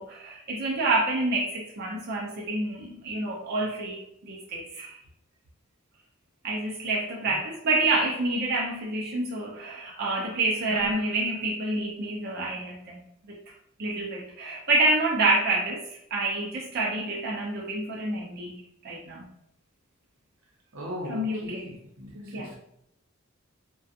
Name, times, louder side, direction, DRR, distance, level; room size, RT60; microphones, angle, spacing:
voice 1, 0.0-5.0 6.4-13.0 13.3-13.4 13.8-15.8 16.1-19.2 21.1-21.7 22.3-22.5, right 2 dB, 50° right, 0.5 m, -28 dB
voice 2, 20.7-22.6, equal, 85° right, 0.7 m, -38 dB
2.4 x 2.2 x 2.6 m
head